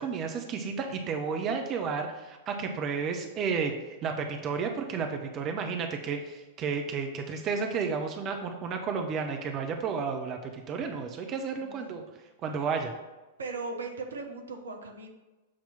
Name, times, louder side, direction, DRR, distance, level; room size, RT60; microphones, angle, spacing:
voice 1, 0.0-12.0 12.4-12.9, right 5 dB, 30° right, 4 dB, 0.6 m, -32 dB
voice 2, 13.4-15.1, right 3 dB, 70° right, 4 dB, 0.9 m, -38 dB
7.3 x 2.9 x 5.7 m, 1.1 s
figure-of-eight pair, 95°, 0 cm